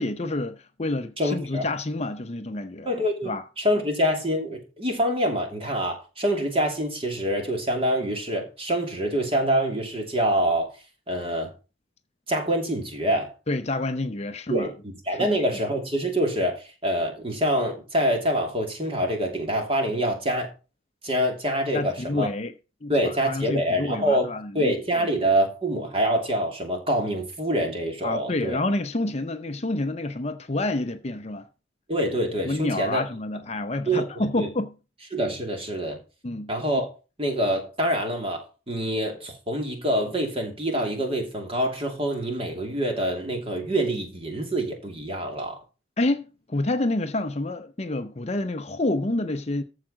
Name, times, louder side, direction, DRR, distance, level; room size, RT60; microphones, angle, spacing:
voice 1, 0.0-2.9 3.2-3.4 13.5-14.7 15.1-15.4 21.7-22.5 22.8-25.1 28.0-31.5 32.4-34.7 36.2-36.5 46.0-46.2 46.5-49.6, left 2 dB, 35° left, 0.7 m, -28 dB
voice 2, 1.2-1.7 2.8-10.7 11.1-11.5 12.3-13.3 14.5-20.5 21.0-22.3 22.9-24.3 24.5-28.6 31.9-33.0 33.9-34.5 35.1-36.0 36.5-36.9 37.2-45.6, equal, 30° right, 2.9 m, -26 dB
14.0 x 4.9 x 5.8 m
head